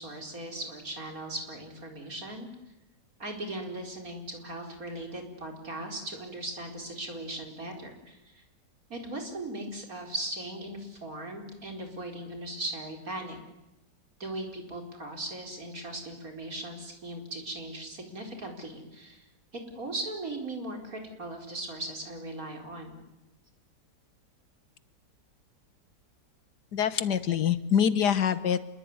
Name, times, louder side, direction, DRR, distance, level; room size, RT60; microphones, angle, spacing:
voice 1, 0.0-2.5 3.2-8.4 8.9-13.4 14.2-19.2 19.5-23.0 27.3-27.4, right 1 dB, 55° right, 3 dB, 4.9 m, -38 dB
voice 2, 26.7-28.6, left 8 dB, 75° left, 13 dB, 1.8 m, -25 dB
27.5 x 22.0 x 9.6 m, 0.95 s
omnidirectional pair, 1.8 m